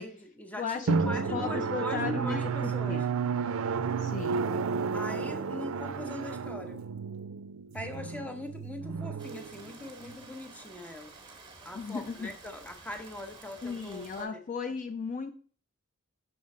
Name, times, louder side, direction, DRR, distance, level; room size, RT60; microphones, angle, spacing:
voice 1, 0.0-3.1 4.9-6.8 7.7-11.1 11.6-14.4, left 1 dB, 5° left, 6 dB, 0.7 m, -41 dB
voice 2, 0.6-3.0 4.0-4.4 11.7-12.3 13.6-15.3, left 5 dB, 40° left, 8 dB, 0.4 m, -36 dB
Drum, 0.9-10.2, right 5 dB, 75° right, 0.4 m, -32 dB
Rain, 9.2-14.3, right 3 dB, 25° right, 1.1 m, -51 dB
5.7 x 3.7 x 5.3 m, 0.43 s
head